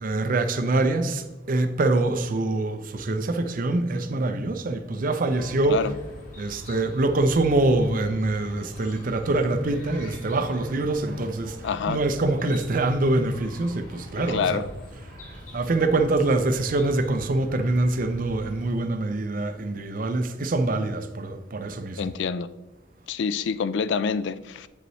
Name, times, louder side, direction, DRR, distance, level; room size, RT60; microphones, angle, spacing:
voice 1, 0.0-5.9 6.4-14.6 15.3-22.1, right 2 dB, 45° right, 0.5 m, -25 dB
Chirp tweet, 5.3-18.7, equal, 40° left, 1.5 m, -43 dB
voice 2, 11.6-12.0 14.2-14.7 22.0-22.5 23.1-24.7, left 6 dB, 60° left, 0.3 m, -27 dB
8.7 x 5.4 x 3.1 m
head